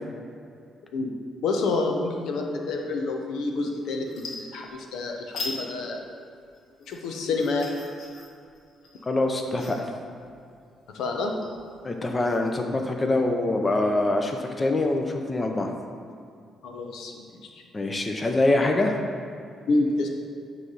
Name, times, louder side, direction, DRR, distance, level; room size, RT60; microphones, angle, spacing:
voice 1, 1.4-6.0 6.9-7.7 10.9-11.4 16.6-17.3 19.7-20.1, left 3 dB, 85° left, 2 dB, 0.9 m, -28 dB
sound 1, 3.5-3.7 4.0-5.0 5.3-5.6 6.0-12.5, left 3 dB, 60° left, 1.8 m, -40 dB
voice 2, 9.1-9.8 11.8-15.7 17.7-19.0, left 2 dB, 25° left, 3 dB, 0.7 m, -24 dB
9.0 x 3.4 x 5.5 m, 2.4 s
cardioid pair, 90°, 0 cm